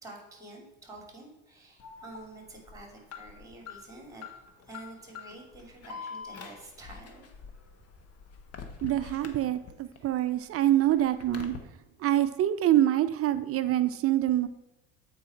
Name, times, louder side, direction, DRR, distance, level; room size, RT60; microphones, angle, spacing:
voice 1, 0.0-4.2 4.7-7.3 10.0-10.4, right 2 dB, 10° right, 1 dB, 2.7 m, -48 dB
Alarm, 1.8-10.0 10.3-11.6, left 5 dB, 40° left, 1.2 m, -45 dB
voice 2, 8.8-11.6 12.0-14.5, right 13 dB, 40° right, 12 dB, 0.5 m, -25 dB
8.1 x 4.7 x 4.4 m, 0.97 s
supercardioid pair, 95°, 38 cm